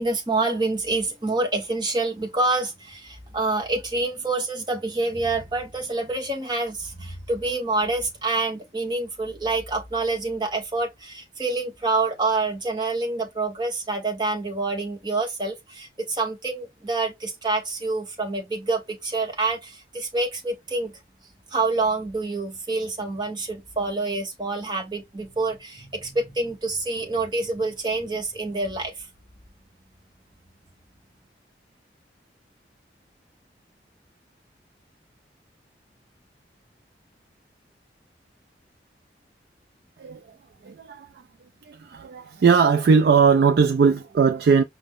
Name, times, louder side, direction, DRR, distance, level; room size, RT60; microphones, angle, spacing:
voice 1, 0.0-21.0 21.5-29.1, right 3 dB, 25° right, 1.0 m, -27 dB
voice 2, 40.6-41.1 41.6-44.6, right 5 dB, 60° right, 0.3 m, -19 dB
5.1 x 2.1 x 3.6 m
head